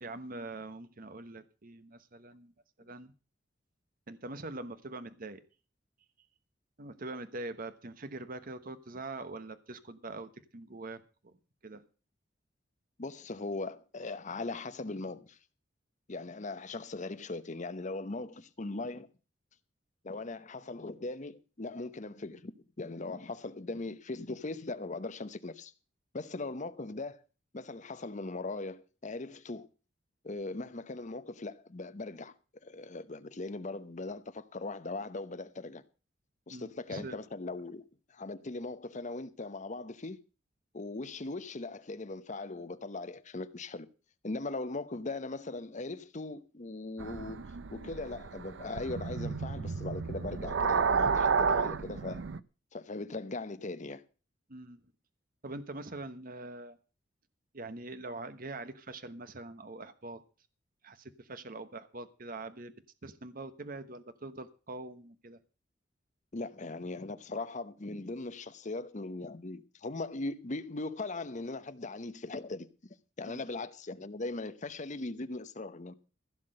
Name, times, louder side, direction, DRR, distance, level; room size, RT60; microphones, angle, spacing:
voice 1, 0.0-2.5 2.8-3.1 4.1-5.4 6.8-11.3 11.6-11.8 36.5-37.2 54.5-54.8 55.4-56.8 57.5-60.2 60.8-62.7 63.0-65.4 73.2-73.4, right 2 dB, 50° right, 1.1 m, -43 dB
voice 2, 13.0-15.4 16.1-19.1 20.0-22.5 22.8-25.7 26.1-27.2 27.5-29.7 30.2-32.3 32.6-35.8 36.5-37.8 38.1-40.2 40.7-43.9 44.2-47.4 47.7-52.2 52.7-54.0 66.3-72.7 73.2-75.9, left 2 dB, 40° left, 0.9 m, -39 dB
sound 1, 47.0-52.4, right 5 dB, 80° right, 0.6 m, -31 dB
15.5 x 6.1 x 7.7 m
head